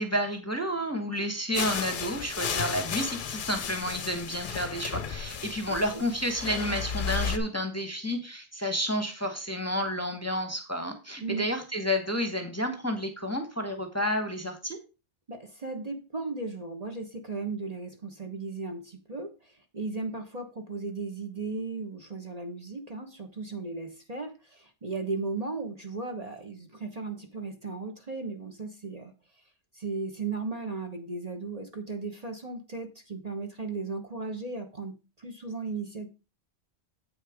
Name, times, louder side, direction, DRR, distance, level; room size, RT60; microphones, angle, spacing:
voice 1, 0.0-14.8, equal, 15° left, 5 dB, 1.2 m, -30 dB
sound 1, 1.5-7.4, left 7 dB, 55° left, 0.8 m, -34 dB
voice 2, 5.7-6.0 11.2-11.5 15.3-29.1 29.7-36.1, right 3 dB, 35° right, 4 dB, 1.2 m, -36 dB
8.3 x 6.5 x 4.9 m, 0.30 s
omnidirectional pair, 1.2 m